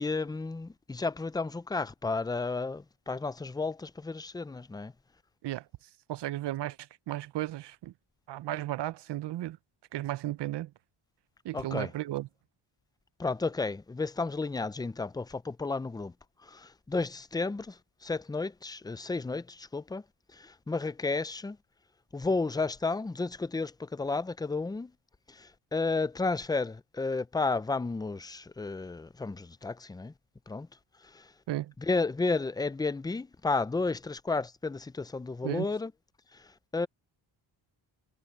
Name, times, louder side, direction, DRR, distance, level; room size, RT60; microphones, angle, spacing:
voice 1, 0.0-4.9 11.5-11.9 13.2-16.1 16.4-20.0 20.3-21.6 22.1-24.9 25.3-30.1 30.5-30.7 31.0-31.3 31.8-35.9 36.3-36.9, left 3 dB, 10° left, 0.3 m, -32 dB
voice 2, 6.1-6.8 7.1-7.9 8.3-9.6 9.9-10.7 11.4-12.3 31.5-31.7 35.4-35.7, right 15 dB, 60° right, 0.6 m, -34 dB
cardioid pair, 140°, 49 cm